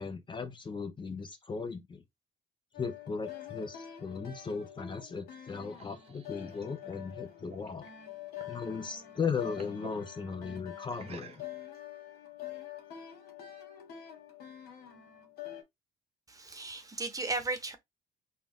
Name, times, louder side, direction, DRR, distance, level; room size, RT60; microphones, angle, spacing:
voice 1, 0.0-2.0 2.8-7.9 8.5-11.4, left 5 dB, 30° left, 0.7 m, -37 dB
sound 1, 2.7-15.6, left 11 dB, 65° left, 1.5 m, -46 dB
sound 2, 5.3-8.6 9.0-10.0 10.9-11.8, right 7 dB, 35° right, 0.6 m, -53 dB
voice 2, 16.3-17.8, right 3 dB, 20° right, 1.0 m, -35 dB
4.1 x 2.4 x 3.6 m
cardioid pair, 110°, 17 cm